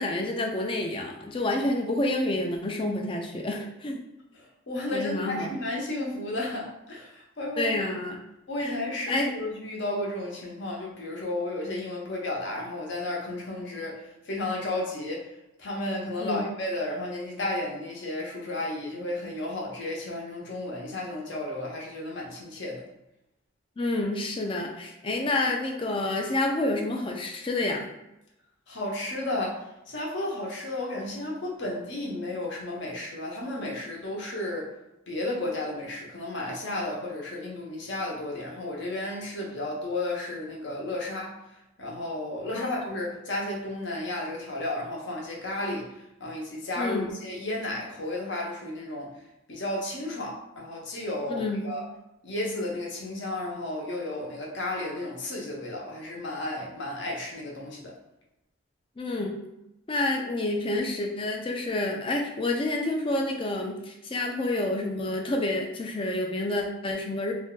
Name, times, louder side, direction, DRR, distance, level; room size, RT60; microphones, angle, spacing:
voice 1, 0.0-4.0 4.9-5.5 7.6-8.2 8.6-8.8 9.1-9.3 16.2-16.5 23.8-27.9 42.5-42.7 46.8-47.1 51.3-51.7 59.0-59.3 59.9-67.3, left 2 dB, 25° left, 2 dB, 0.4 m, -28 dB
voice 2, 4.3-7.8 8.5-15.3 15.6-22.8 28.7-34.7 35.1-41.4 41.8-45.9 46.2-49.1 49.5-51.8 52.2-57.9, left 1 dB, 60° left, -2 dB, 0.7 m, -33 dB
2.5 x 2.2 x 3.7 m, 0.91 s
head